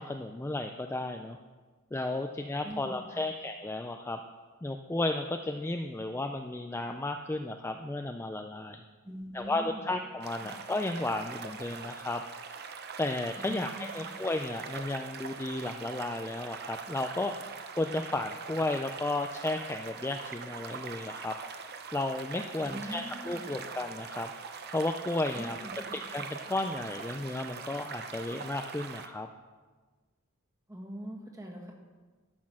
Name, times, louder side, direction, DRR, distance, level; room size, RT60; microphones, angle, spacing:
voice 1, 0.0-1.4 1.9-4.2 4.6-8.8 9.3-12.2 13.0-17.3 17.8-21.3 21.9-24.3 24.7-25.6 25.9-29.3, left 2 dB, 10° left, 5 dB, 0.3 m, -33 dB
voice 2, 2.6-3.2 9.0-9.9 13.4-14.1 22.6-23.5 25.3-25.7 30.7-31.7, equal, 15° right, 0 dB, 1.6 m, -43 dB
sound 1, 10.2-29.1, right 5 dB, 45° right, 0.8 m, -43 dB
12.5 x 6.3 x 6.2 m, 1.4 s
head